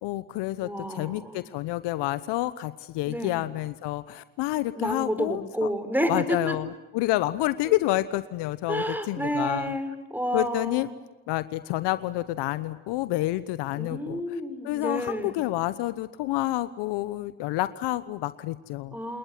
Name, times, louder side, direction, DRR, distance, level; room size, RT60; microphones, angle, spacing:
voice 1, 0.0-5.7 6.1-9.8 10.3-10.9 11.3-19.0, left 16 dB, 65° left, 14 dB, 1.2 m, -29 dB
voice 2, 0.6-1.4 3.1-3.4 4.7-6.6 8.7-10.9 13.7-15.4 18.9-19.2, equal, 5° right, 10 dB, 4.7 m, -30 dB
29.0 x 20.0 x 9.4 m, 1.0 s
hypercardioid pair, 75°, 44 cm